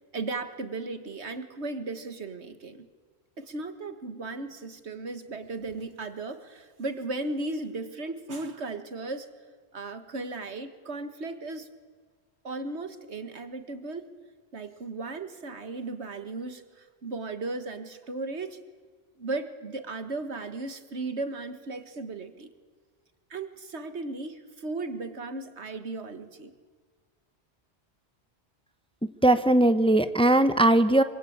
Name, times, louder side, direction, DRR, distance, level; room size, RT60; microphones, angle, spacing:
voice 1, 0.1-2.9 3.4-9.3 9.7-11.7 12.4-14.1 14.5-18.6 19.2-22.5 23.3-26.5, right 3 dB, 80° right, 9 dB, 1.9 m, -36 dB
voice 2, 29.2-31.0, right 1 dB, 5° left, 11 dB, 0.9 m, -19 dB
25.5 x 25.0 x 8.7 m, 1.5 s
omnidirectional pair, 1.1 m